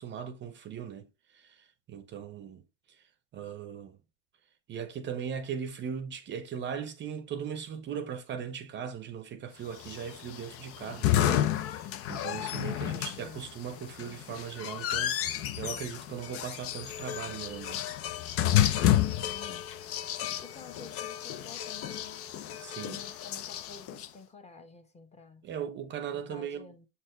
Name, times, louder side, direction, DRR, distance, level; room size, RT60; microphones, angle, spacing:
voice 1, 0.0-2.6 2.9-4.0 4.7-17.9 22.6-23.0 25.4-26.8, right 8 dB, 35° right, 0.7 m, -39 dB
sound 1, 9.8-24.1, left 12 dB, 45° left, 0.7 m, -31 dB
voice 2, 12.7-13.4 19.0-19.8 20.4-22.3 22.9-25.5 26.1-26.9, left 4 dB, 20° left, 1.3 m, -50 dB
7.2 x 4.2 x 3.1 m
supercardioid pair, 110°, 33 cm